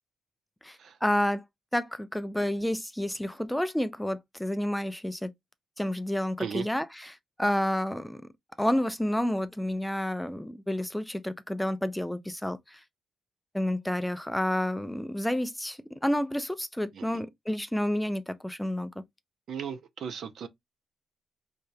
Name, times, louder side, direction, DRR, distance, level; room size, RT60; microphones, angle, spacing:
voice 1, 0.6-1.4 1.7-5.3 5.8-6.9 7.4-8.2 8.6-12.8 13.5-18.9, left 1 dB, 5° left, 0.4 m, -30 dB
voice 2, 19.5-20.5, right 7 dB, 60° right, 0.6 m, -36 dB
4.8 x 2.8 x 2.2 m
wide cardioid pair, 160°, 0 cm